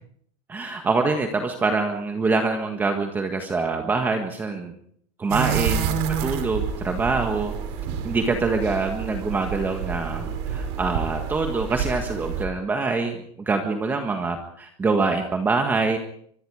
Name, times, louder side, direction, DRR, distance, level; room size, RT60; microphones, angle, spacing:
voice 1, 0.5-4.7 5.2-5.9 6.2-7.5 8.0-16.0, right 3 dB, 10° right, 5 dB, 1.6 m, -25 dB
sound 1, 5.3-12.4, right 7 dB, 60° right, 4.6 m, -28 dB
25.0 x 23.5 x 4.9 m, 0.65 s
supercardioid pair, 170°, 15 cm